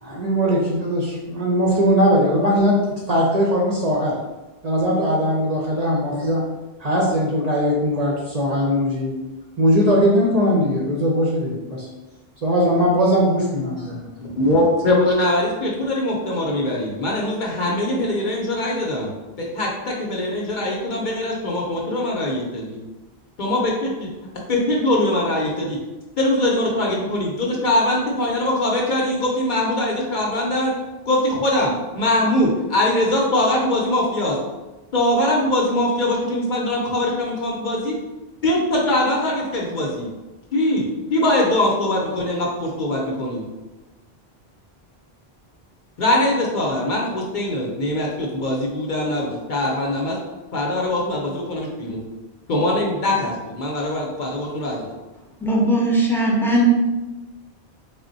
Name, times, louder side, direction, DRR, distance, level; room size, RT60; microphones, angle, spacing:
voice 1, 0.0-2.7 3.1-4.2 4.6-6.4 6.8-9.1 9.6-11.9 12.4-14.1, equal, 50° right, -3 dB, 0.6 m, -20 dB
voice 2, 14.3-19.1 19.4-22.8 23.4-24.1 24.5-25.8 26.2-30.7 31.1-34.4 34.9-38.0 38.4-40.1 40.5-40.8 41.1-43.5 46.0-50.2 50.5-52.0 52.5-54.8, left 1 dB, 55° left, -2 dB, 0.7 m, -22 dB
voice 3, 55.4-56.7, right 1 dB, 5° left, -4 dB, 0.6 m, -19 dB
3.4 x 2.1 x 3.9 m, 1.1 s
omnidirectional pair, 1.0 m